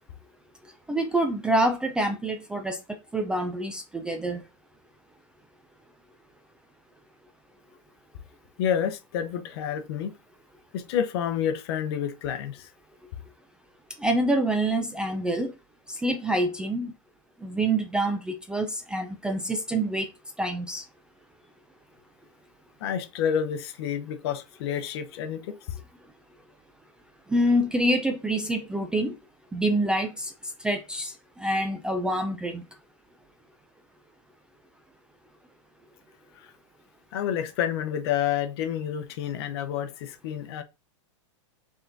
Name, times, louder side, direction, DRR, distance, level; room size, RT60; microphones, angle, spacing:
voice 1, 0.9-2.8 3.1-4.4 14.0-15.5 16.0-16.9 17.4-20.1 20.4-20.8 27.3-29.1 29.5-30.3 30.6-31.1 31.4-32.6, right 1 dB, 5° right, 0.3 m, -26 dB
voice 2, 8.6-10.1 10.7-12.7 22.8-25.6 36.4-36.5 37.1-40.6, left 9 dB, 55° left, 0.8 m, -29 dB
5.4 x 3.8 x 2.6 m
supercardioid pair, 145°, 16 cm